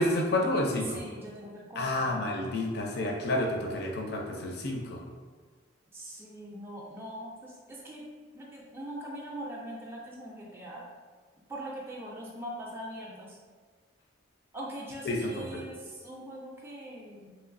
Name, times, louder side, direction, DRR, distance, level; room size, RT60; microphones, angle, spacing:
voice 1, 0.0-1.0 1.8-5.0 15.0-15.6, left 1 dB, 50° left, 1 dB, 0.5 m, -30 dB
voice 2, 0.8-2.2 5.9-8.0 8.3-10.9 11.5-13.4 14.5-17.3, right 1 dB, 10° right, -4 dB, 0.4 m, -41 dB
3.1 x 3.0 x 2.5 m, 1.5 s
head